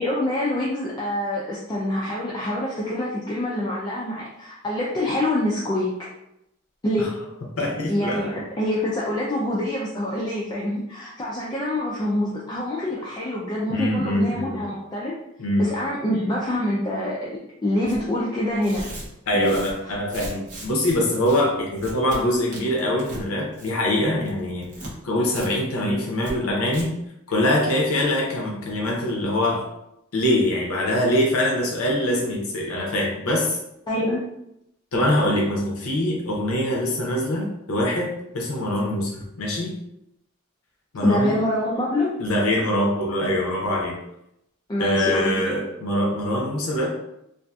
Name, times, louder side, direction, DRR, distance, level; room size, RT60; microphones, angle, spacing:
voice 1, 0.0-6.1 6.8-7.1 7.9-15.2 15.6-18.9 19.3-19.5 33.9-34.3 41.0-42.1 44.7-45.6, left 1 dB, 20° left, -5 dB, 0.3 m, -25 dB
voice 2, 7.6-8.4 13.7-14.6 15.4-15.7 19.3-24.7 25.0-26.9 27.3-29.6 30.1-33.6 34.9-39.8 40.9-41.4 42.2-44.0 44.8-46.9, left 1 dB, 80° left, -1 dB, 0.6 m, -23 dB
Tearing, 17.8-18.0 18.5-21.0 21.2-21.4 21.7-22.2 22.5-23.2 23.5-23.9 24.2-24.9 25.3-25.5 25.7-25.8 26.2-26.3 26.7-26.8, right 1 dB, 40° right, 0.7 m, -37 dB
2.6 x 2.4 x 2.3 m, 0.81 s
head